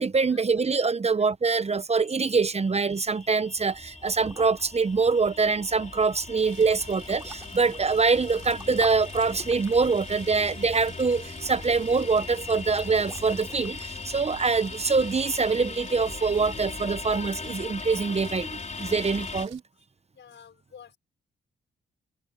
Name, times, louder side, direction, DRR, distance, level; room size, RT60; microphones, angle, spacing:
voice 1, 0.0-19.6, right 4 dB, 30° right, 0.9 m, -24 dB
sound 1, 2.0-19.5, left 4 dB, 35° left, 4.9 m, -39 dB
sound 2, 3.5-13.9, right 1 dB, 15° right, 3.8 m, -48 dB
Rain, 6.4-19.6, right 9 dB, 75° right, 5.2 m, -51 dB
voice 2, 18.5-18.9 20.1-21.0, left 7 dB, 65° left, 4.9 m, -52 dB
open air
cardioid pair, 75°, 20 cm